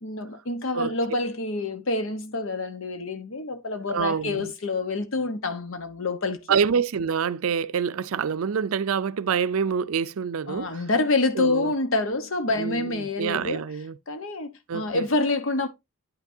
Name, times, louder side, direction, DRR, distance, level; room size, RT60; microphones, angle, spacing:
voice 1, 0.0-6.5 10.5-13.7 14.1-15.7, left 3 dB, 65° left, 1.0 m, -27 dB
voice 2, 3.9-4.5 6.5-10.7 11.4-11.7 12.6-13.9 14.7-15.0, right 6 dB, 80° right, 0.4 m, -26 dB
9.6 x 5.9 x 2.7 m
head